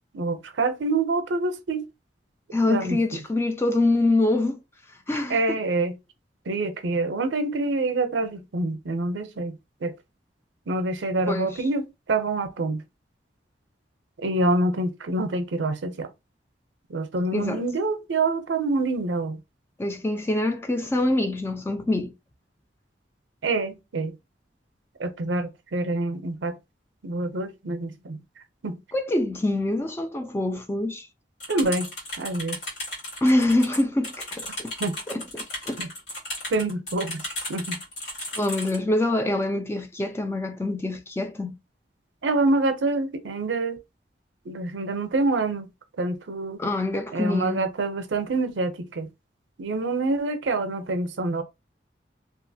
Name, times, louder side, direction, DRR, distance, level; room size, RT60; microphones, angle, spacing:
voice 1, 0.1-1.8 2.7-3.0 5.3-5.9 6.5-9.9 10.7-12.8 14.2-16.1 16.9-19.4 23.4-24.1 25.0-26.6 27.0-28.2 28.6-28.8 31.5-31.9 32.2-32.6 34.8-35.0 35.8-35.9 36.5-37.8 42.2-43.8 44.5-45.6 46.0-46.6 47.1-49.1 49.6-51.4, right 2 dB, 90° right, 0.5 m, -26 dB
voice 2, 2.5-4.6 5.1-5.4 11.3-11.6 17.3-17.6 19.8-22.1 28.9-31.1 33.2-34.7 35.1-35.2 35.7-35.8 38.4-41.5 46.6-47.7, left 2 dB, 15° left, 0.3 m, -25 dB
sound 1, 31.4-38.8, left 1 dB, 70° left, 1.6 m, -35 dB
2.8 x 2.4 x 2.7 m
head